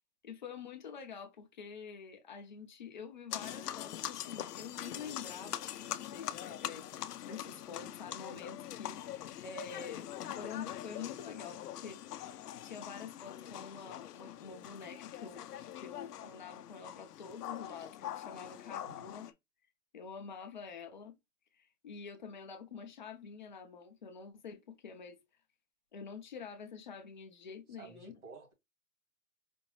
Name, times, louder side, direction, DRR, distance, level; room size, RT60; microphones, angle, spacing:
voice 1, 0.2-12.0 12.6-19.3 19.9-21.1 21.5-25.2 25.9-28.1, left 6 dB, 30° left, 0.7 m, -47 dB
sound 1, 3.3-19.3, left 11 dB, 90° left, 0.7 m, -43 dB
voice 2, 27.8-28.5, right 4 dB, 70° right, 2.3 m, -52 dB
5.1 x 2.7 x 3.1 m
hypercardioid pair, 180°, 45 cm